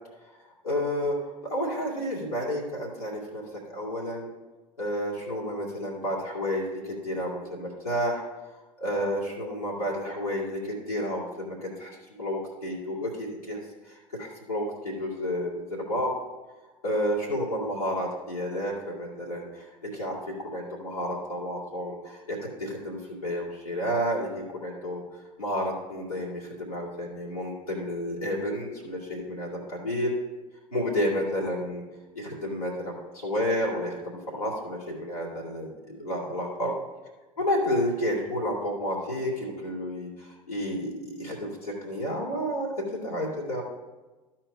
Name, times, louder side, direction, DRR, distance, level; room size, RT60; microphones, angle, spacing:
voice 1, 0.6-1.2 1.4-4.3 4.8-8.2 8.8-13.6 13.9-16.1 16.8-25.0 25.4-30.1 30.7-31.8 32.1-36.7 37.4-43.6, equal, 90° left, -7 dB, 2.3 m, -31 dB
13.0 x 4.4 x 5.0 m, 1.2 s
figure-of-eight pair, 65°, 18 cm